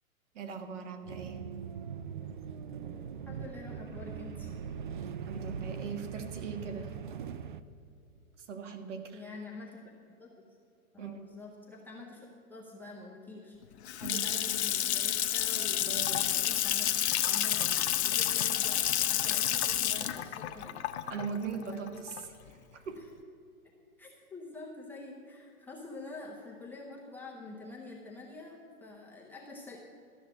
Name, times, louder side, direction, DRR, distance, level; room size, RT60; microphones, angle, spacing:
voice 1, 0.3-1.4 5.2-6.9 8.4-9.2 11.0-11.2 14.0-14.2 15.9-16.2 21.1-23.0, right 5 dB, 55° right, 6 dB, 1.6 m, -40 dB
sound 1, 1.0-7.6, right 7 dB, 40° right, 0.4 m, -41 dB
voice 2, 3.3-4.5 9.1-9.8 10.2-10.3 10.9-16.9 17.3-20.7 21.7-21.8 23.0-23.1 24.0-29.8, left 3 dB, 5° left, -4 dB, 0.6 m, -47 dB
Water tap faucet / Sink (filling or washing) / Splash splatter, 13.6-22.5, left 11 dB, 50° left, 0.7 m, -30 dB
12.5 x 6.5 x 8.8 m, 2.5 s
hypercardioid pair, 130°, 44 cm